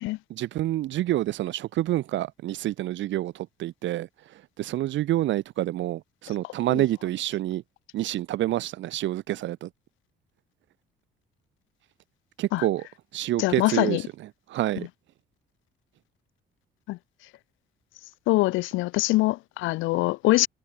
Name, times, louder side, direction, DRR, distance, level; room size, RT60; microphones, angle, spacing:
voice 1, 0.3-4.1 4.6-7.6 7.9-9.7 12.4-12.8 13.1-14.0 14.5-14.9, right 14 dB, 70° right, 0.9 m, -27 dB
voice 2, 13.4-14.0 16.9-17.0 18.3-20.5, left 20 dB, 80° left, 0.4 m, -23 dB
cardioid pair, 105°, 20 cm